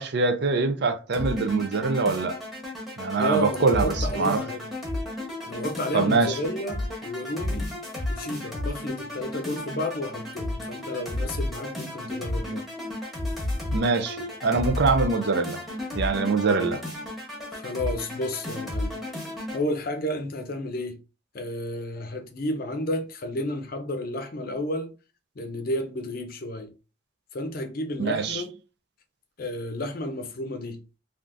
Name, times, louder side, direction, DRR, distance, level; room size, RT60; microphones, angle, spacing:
voice 1, 0.0-2.3 3.0-4.4 5.9-6.4 13.7-15.6 15.9-16.8 28.0-28.4, right 4 dB, 60° right, 0.5 m, -24 dB
sound 1, 1.1-19.6, left 1 dB, ahead, 1.0 m, -33 dB
voice 2, 3.2-4.6 5.5-7.7 8.1-12.7 17.5-19.0 19.5-21.0 21.3-24.9 25.4-26.7 27.3-28.5 29.4-30.8, left 1 dB, 50° left, 0.6 m, -31 dB
3.4 x 2.5 x 2.5 m
head